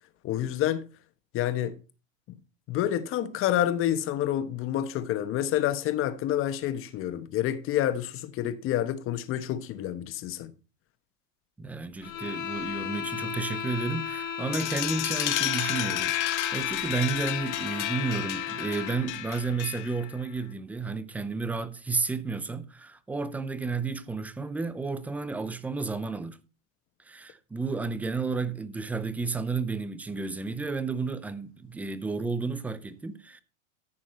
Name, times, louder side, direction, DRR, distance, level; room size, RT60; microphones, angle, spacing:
voice 1, 0.2-0.9 1.3-1.8 2.7-10.5, left 11 dB, 30° left, 1.2 m, -28 dB
voice 2, 11.6-26.4 27.0-33.4, right 4 dB, 5° right, 0.4 m, -32 dB
sound 1, 12.0-19.1, left 7 dB, 80° left, 2.9 m, -35 dB
sound 2, 14.5-20.1, left 14 dB, 60° left, 1.7 m, -31 dB
14.0 x 6.3 x 4.4 m
supercardioid pair, 135°, 40 cm